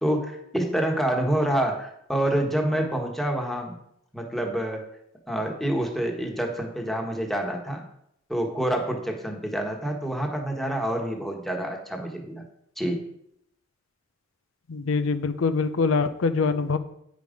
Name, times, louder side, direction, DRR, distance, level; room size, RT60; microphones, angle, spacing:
voice 1, 0.0-3.8 4.1-4.8 5.3-7.8 8.3-12.4 12.8-13.1, right 1 dB, ahead, 1 dB, 1.3 m, -27 dB
voice 2, 14.7-16.8, left 4 dB, 90° left, 11 dB, 0.6 m, -24 dB
9.4 x 5.1 x 5.1 m, 0.75 s
head